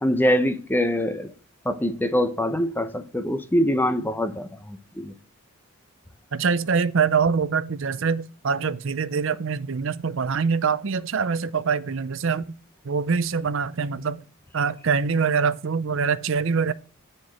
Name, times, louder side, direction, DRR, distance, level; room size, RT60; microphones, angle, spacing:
voice 1, 0.0-1.3 1.6-5.1, equal, 10° left, 0.7 m, -24 dB
voice 2, 6.3-12.4 12.8-14.2 14.5-16.7, right 5 dB, 60° right, 0.6 m, -24 dB
10.5 x 4.5 x 6.3 m
head